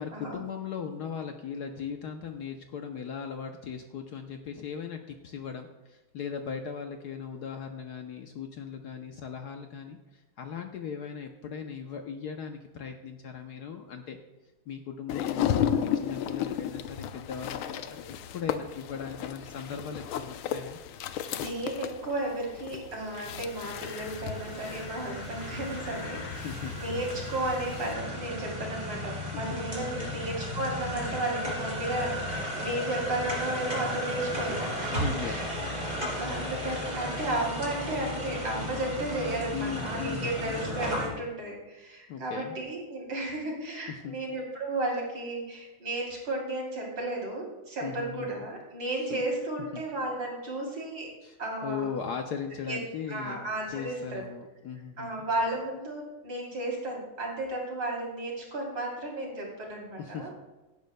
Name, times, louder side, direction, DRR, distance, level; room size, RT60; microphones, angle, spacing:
voice 1, 0.0-14.2 14.7-20.8 26.3-26.8 29.3-29.6 30.0-30.2 34.9-35.4 35.7-35.9 39.5-40.5 42.1-42.6 43.9-44.2 47.8-48.3 49.1-49.2 49.7-49.8 51.2-51.4 51.6-55.3 60.0-60.3, left 6 dB, 65° left, 5 dB, 1.1 m, -38 dB
sound 1, 15.1-27.9, left 9 dB, 90° left, 1.5 m, -34 dB
voice 2, 21.3-35.5 36.2-51.1 51.4-51.9 52.7-52.8 53.1-54.2 55.0-60.3, right 1 dB, 65° right, -2 dB, 4.0 m, -33 dB
sound 2, 23.1-41.1, equal, 20° right, 4.0 m, -35 dB
17.0 x 10.5 x 2.2 m, 1.1 s
omnidirectional pair, 2.2 m